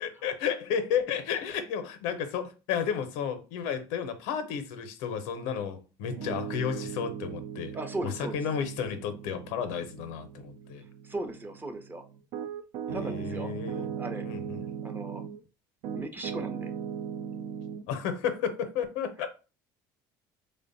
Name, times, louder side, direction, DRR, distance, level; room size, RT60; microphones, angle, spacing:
voice 1, 0.0-7.8 8.0-10.8 12.9-13.9 14.2-14.7 17.9-19.3, left 7 dB, 80° left, 0.6 m, -32 dB
Piano, 6.0-15.4 15.8-17.8, right 8 dB, 75° right, 0.5 m, -38 dB
voice 2, 7.7-8.4 11.1-12.0 12.9-13.5 14.0-14.3 14.8-15.2 15.9-16.7, right 2 dB, 20° right, 0.6 m, -37 dB
3.3 x 2.1 x 3.9 m
supercardioid pair, 100°, 11 cm